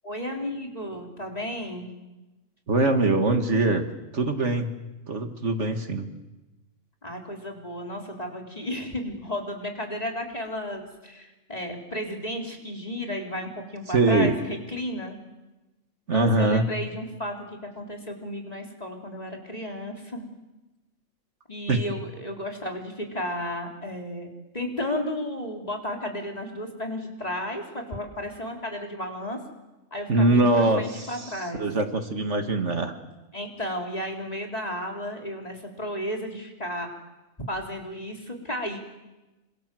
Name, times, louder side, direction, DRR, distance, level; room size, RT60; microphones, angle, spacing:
voice 1, 0.0-1.9 7.0-15.2 16.1-20.3 21.5-29.4 29.9-31.6 33.3-36.9 37.5-38.8, left 1 dB, 30° left, 2 dB, 3.9 m, -33 dB
voice 2, 2.7-4.8 5.1-6.1 13.9-14.4 16.1-16.7 21.7-21.8 30.1-31.3 31.6-32.9, right 2 dB, 55° right, 6 dB, 2.1 m, -23 dB
28.0 x 26.0 x 7.7 m, 1.1 s
omnidirectional pair, 1.4 m